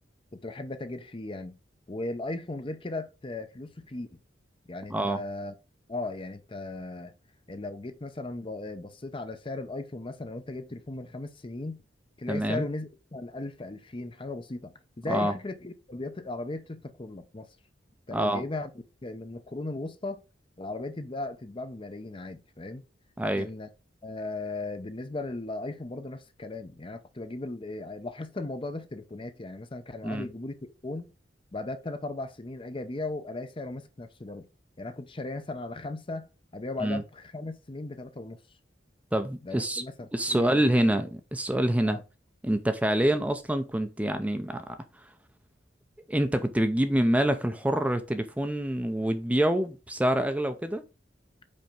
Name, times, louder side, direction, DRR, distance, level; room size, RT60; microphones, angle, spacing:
voice 1, 0.3-1.6 1.9-4.2 4.7-5.5 5.9-7.1 7.5-11.8 12.2-17.5 18.1-18.7 19.0-20.2 20.6-22.8 23.2-23.7 24.0-30.5 30.8-31.1 31.5-34.5 34.8-36.3 36.5-38.4 39.4-40.9 41.8-42.0, left 2 dB, 30° left, 0.7 m, -37 dB
voice 2, 4.9-5.2 12.3-12.7 15.1-15.3 18.1-18.4 23.2-23.5 30.0-30.3 36.8-37.0 39.1-39.8 40.1-42.0 42.4-44.8 46.1-50.8, right 1 dB, 10° right, 0.6 m, -26 dB
5.3 x 4.4 x 5.1 m
head